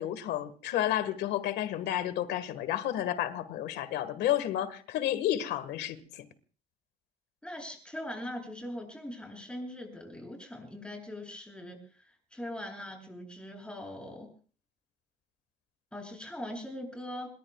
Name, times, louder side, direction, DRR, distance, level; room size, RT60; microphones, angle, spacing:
voice 1, 0.0-6.2, left 12 dB, 80° left, 1.7 m, -31 dB
voice 2, 7.4-14.3 15.9-17.3, left 1 dB, 5° left, 8.0 m, -41 dB
27.5 x 21.5 x 2.4 m
cardioid pair, 110°, 17 cm